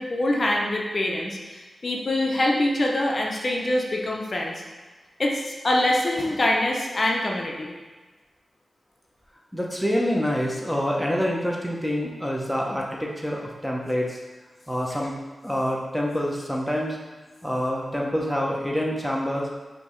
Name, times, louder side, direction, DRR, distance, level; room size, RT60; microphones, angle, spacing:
voice 1, 0.0-4.6 5.2-7.7, left 1 dB, 40° left, -1 dB, 0.6 m, -24 dB
voice 2, 9.5-14.2 14.7-15.1 15.4-17.0 17.4-19.5, equal, ahead, -2 dB, 0.7 m, -26 dB
5.1 x 2.7 x 3.1 m, 1.3 s
wide cardioid pair, 105°, 0 cm